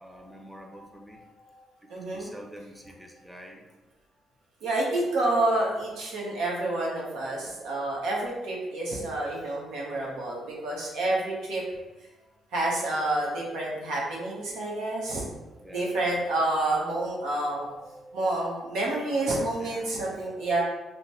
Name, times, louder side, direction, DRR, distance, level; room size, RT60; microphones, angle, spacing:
voice 1, 0.0-3.6 4.7-4.8 5.5-5.7 9.4-9.7 10.1-10.3 12.1-12.2 14.8-16.2 17.4-20.3, equal, 5° right, 1 dB, 0.6 m, -48 dB
voice 2, 1.9-2.3 4.6-11.6 12.5-15.2 15.7-17.7 18.1-20.6, right 2 dB, 85° right, -3 dB, 0.9 m, -28 dB
3.1 x 2.1 x 4.0 m, 1.1 s
cardioid pair, 90°, 0 cm